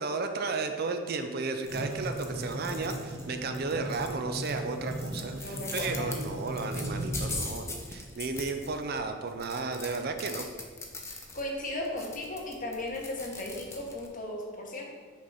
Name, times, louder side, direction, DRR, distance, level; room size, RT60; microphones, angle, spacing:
voice 1, 0.0-10.5, right 3 dB, 50° right, 6 dB, 0.5 m, -33 dB
sound 1, 1.6-14.1, left 2 dB, 15° left, 0.6 m, -42 dB
sound 2, 1.7-7.3, right 1 dB, 85° right, 1.2 m, -37 dB
voice 2, 5.4-6.1 11.3-14.8, left 1 dB, 40° left, 0 dB, 1.1 m, -36 dB
6.1 x 3.9 x 5.7 m, 1.5 s
head